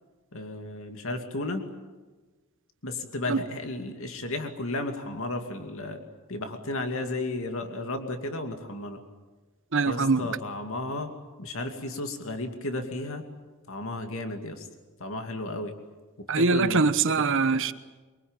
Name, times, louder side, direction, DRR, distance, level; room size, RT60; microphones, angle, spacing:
voice 1, 0.3-1.7 2.8-6.0 6.3-9.0 9.8-11.1 11.4-13.2 13.7-14.7 15.0-15.7 16.3-17.3, left 2 dB, 65° left, 2.6 m, -33 dB
voice 2, 9.7-10.3 16.3-17.7, right 4 dB, 60° right, 1.1 m, -23 dB
24.0 x 23.0 x 9.0 m
head